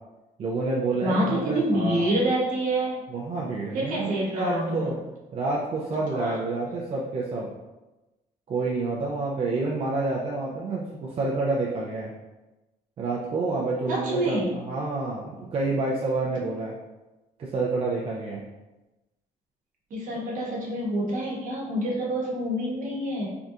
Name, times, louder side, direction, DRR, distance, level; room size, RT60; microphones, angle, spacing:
voice 1, 0.4-2.0 3.1-5.0 5.3-7.5 8.5-12.1 13.0-16.7 17.4-18.4, right 3 dB, 40° right, -4 dB, 0.4 m, -28 dB
voice 2, 1.0-3.0 3.7-4.9 6.1-6.4 13.9-14.5 19.9-23.3, right 1 dB, 60° right, -4 dB, 1.0 m, -27 dB
3.4 x 2.5 x 2.7 m, 1.1 s
cardioid pair, 145°, 15 cm